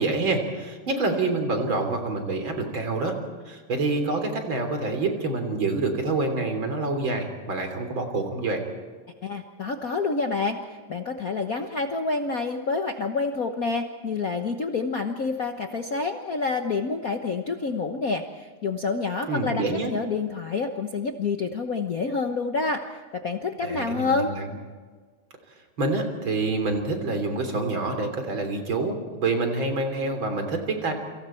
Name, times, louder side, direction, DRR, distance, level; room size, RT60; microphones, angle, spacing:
voice 1, 0.0-3.2 3.5-8.7 19.3-19.9 23.6-24.5 25.8-30.9, right 3 dB, 40° right, 5 dB, 3.9 m, -27 dB
voice 2, 9.2-24.3, left 4 dB, 80° left, 4 dB, 0.7 m, -28 dB
29.0 x 26.0 x 4.5 m, 1.5 s
omnidirectional pair, 3.3 m